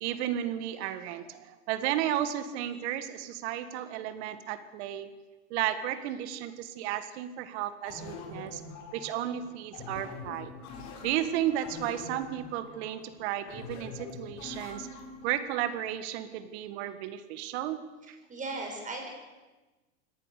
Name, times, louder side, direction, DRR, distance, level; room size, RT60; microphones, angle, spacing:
voice 1, 0.0-5.1 5.5-8.6 8.9-10.5 11.0-14.9 15.2-17.8 18.1-18.2, right 11 dB, 60° right, 12 dB, 2.0 m, -33 dB
sound 1, 7.8-15.4, left 3 dB, 50° left, 5.8 m, -44 dB
voice 2, 18.3-19.1, right 2 dB, 20° right, 1 dB, 6.7 m, -36 dB
24.0 x 18.0 x 6.8 m, 1.2 s
hypercardioid pair, 115°, 36 cm